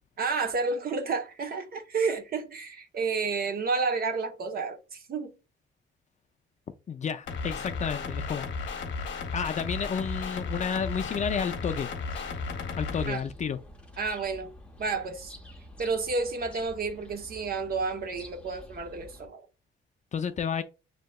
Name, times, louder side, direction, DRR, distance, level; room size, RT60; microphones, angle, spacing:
voice 1, 0.2-5.3 13.1-13.2 14.0-14.5 14.8-15.3 15.8-19.4, right 4 dB, 50° right, 0.8 m, -30 dB
voice 2, 6.9-8.5 9.3-11.9 12.8-13.6 20.1-20.6, left 7 dB, 35° left, 0.4 m, -31 dB
sound 1, 7.3-13.1, left 4 dB, 65° left, 0.8 m, -34 dB
sound 2, 11.5-19.3, left 1 dB, 5° left, 0.7 m, -49 dB
6.3 x 2.8 x 2.2 m
cardioid pair, 90°, 20 cm